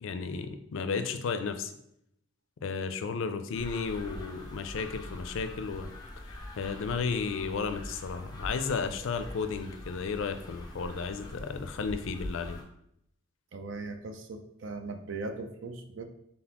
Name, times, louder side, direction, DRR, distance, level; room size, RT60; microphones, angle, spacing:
voice 1, 0.0-1.7 2.6-5.9 6.2-12.6, left 5 dB, 75° left, 9 dB, 0.4 m, -33 dB
sound 1, 3.5-12.6, left 1 dB, 20° left, 0.5 m, -43 dB
voice 2, 13.5-16.1, right 3 dB, 65° right, 7 dB, 0.5 m, -39 dB
4.0 x 3.7 x 2.9 m, 0.75 s
head